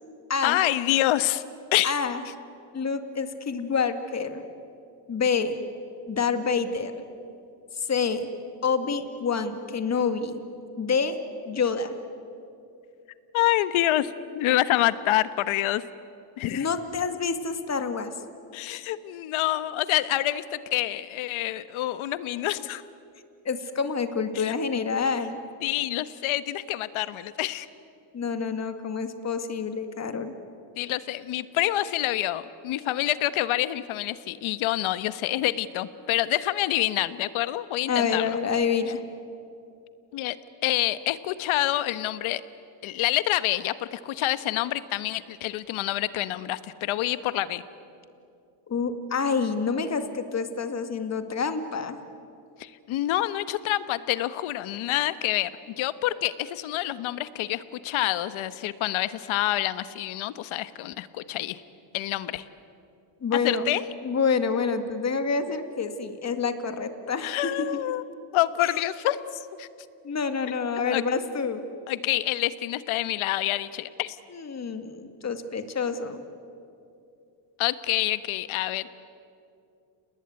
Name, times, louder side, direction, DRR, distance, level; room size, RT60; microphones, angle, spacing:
voice 1, 0.4-1.4 1.7-1.9 13.3-15.8 16.4-16.7 18.5-22.8 24.3-24.5 25.6-27.7 30.8-38.4 40.1-40.4 40.6-42.4 42.8-47.6 52.6-61.6 61.9-62.5 63.3-63.8 67.2-68.0 68.3-69.7 70.9-71.0 71.9-74.2 77.6-78.9, left 14 dB, 70° left, 14 dB, 1.3 m, -27 dB
voice 2, 1.8-2.2 2.7-4.4 5.1-5.6 6.1-7.0 7.7-8.3 8.6-10.4 10.8-11.9 16.5-18.1 23.5-25.4 28.1-30.3 37.9-39.0 48.7-52.0 63.2-63.6 64.0-67.8 68.6-68.8 70.0-71.6 74.3-76.2, left 5 dB, 30° left, 8 dB, 2.2 m, -27 dB
30.0 x 20.0 x 9.7 m, 2.6 s
cardioid pair, 115°, 50 cm